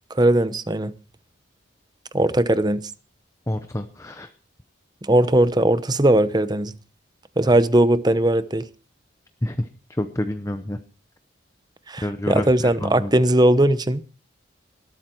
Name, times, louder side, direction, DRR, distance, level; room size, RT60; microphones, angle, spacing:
voice 1, 0.1-0.9 2.1-2.9 5.1-6.7 7.4-8.6 11.9-14.0, right 1 dB, 20° right, 0.8 m, -19 dB
voice 2, 3.5-4.3 9.4-10.8 12.0-13.1, left 1 dB, 15° left, 0.8 m, -28 dB
20.5 x 13.0 x 4.5 m
head